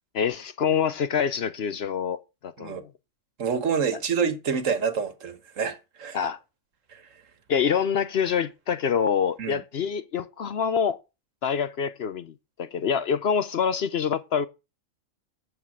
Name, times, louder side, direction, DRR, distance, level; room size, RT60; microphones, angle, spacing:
voice 1, 0.1-2.9 6.1-6.4 7.5-11.0 11.4-14.5, left 7 dB, 60° left, 0.8 m, -26 dB
voice 2, 3.4-6.2 6.9-7.0 9.4-9.6, right 6 dB, 75° right, 1.6 m, -27 dB
8.8 x 5.9 x 7.2 m
omnidirectional pair, 1.4 m